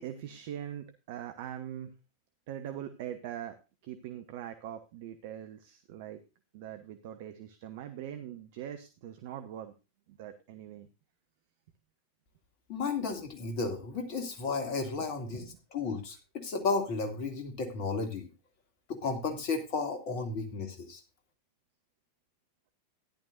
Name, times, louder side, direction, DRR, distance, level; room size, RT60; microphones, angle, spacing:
voice 1, 0.0-1.9 2.5-3.6 3.8-6.2 6.5-9.7 10.1-10.9 15.0-15.6, right 10 dB, 50° right, 8 dB, 0.9 m, -42 dB
voice 2, 12.7-18.3 18.9-21.0, left 4 dB, 45° left, 5 dB, 2.5 m, -33 dB
14.0 x 11.0 x 2.6 m, 0.28 s
figure-of-eight pair, 90°, 0 cm